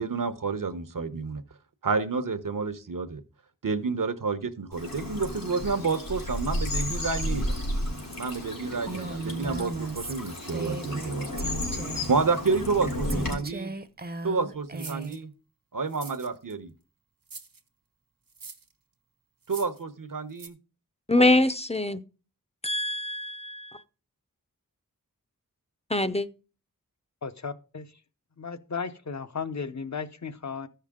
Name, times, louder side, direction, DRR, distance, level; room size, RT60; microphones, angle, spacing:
voice 1, 0.0-1.4 1.8-3.2 3.6-7.6 8.2-11.5 12.1-13.7 14.2-15.3 15.7-16.7 19.5-20.6, right 4 dB, 70° right, 0.9 m, -29 dB
Bird vocalization bird call bird song / Stream, 4.7-13.3, left 1 dB, 85° left, 3.5 m, -33 dB
Female speech woman speaking, 8.9-11.1 11.4-12.1 13.1-15.2, right 3 dB, 30° right, 0.6 m, -37 dB
sound 1, 14.8-15.2 15.9-16.5 17.3-17.6 18.3-18.7 19.4-19.8 20.4-20.5, right 4 dB, 85° right, 1.2 m, -44 dB
voice 2, 21.1-22.0 22.6-23.8 25.9-26.3, left 2 dB, 20° left, 0.5 m, -24 dB
voice 3, 27.2-27.9 28.4-30.7, left 5 dB, 55° left, 0.7 m, -35 dB
14.0 x 5.7 x 3.6 m
wide cardioid pair, 65°, 33 cm